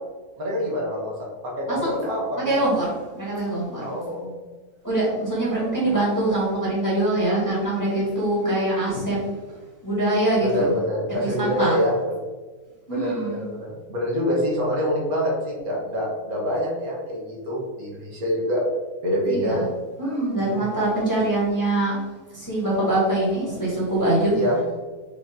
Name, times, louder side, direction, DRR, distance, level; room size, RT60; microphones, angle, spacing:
voice 1, 0.4-2.6 3.8-4.4 10.4-11.9 12.9-18.6 19.0-19.6 20.4-20.7 24.3-24.6, equal, 65° right, -3 dB, 1.6 m, -26 dB
voice 2, 1.7-2.1 2.4-3.9 4.8-9.2 9.8-10.7 11.2-11.8 12.9-13.4 19.3-19.6 20.0-22.0 22.3-24.4, right 1 dB, 10° left, -7 dB, 1.4 m, -23 dB
5.2 x 2.8 x 3.6 m, 1.3 s
omnidirectional pair, 1.7 m